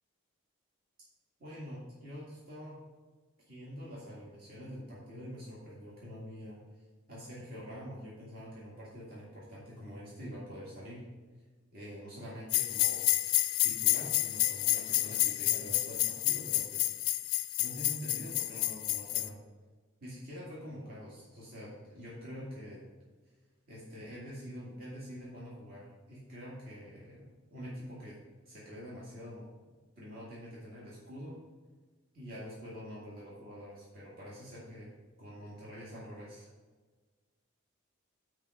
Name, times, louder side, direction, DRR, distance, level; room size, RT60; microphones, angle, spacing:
voice 1, 1.4-2.7 3.5-6.6 7.1-11.0 11.7-13.0 13.6-16.9 17.6-19.4 20.0-22.8 23.7-28.1 28.5-29.5 30.0-31.3 32.1-34.9 35.2-36.5, equal, 45° right, -7 dB, 2.0 m, -46 dB
sound 1, 12.5-19.3, left 15 dB, 90° left, 0.5 m, -30 dB
7.2 x 4.7 x 5.4 m, 1.4 s
head